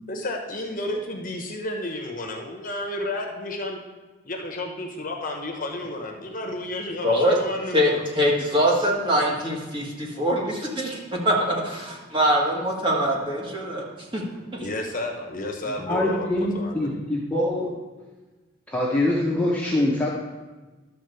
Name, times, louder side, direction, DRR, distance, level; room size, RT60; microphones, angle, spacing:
voice 1, 0.1-3.8 4.2-8.0 10.1-10.2 14.5-16.9, left 1 dB, 40° left, 2 dB, 1.0 m, -31 dB
voice 2, 7.0-7.4 7.7-14.2 14.5-14.7, equal, 25° right, -2 dB, 1.7 m, -23 dB
voice 3, 15.6-17.7 18.7-20.1, left 1 dB, 5° left, -5 dB, 1.0 m, -24 dB
12.0 x 4.2 x 6.8 m, 1.2 s
head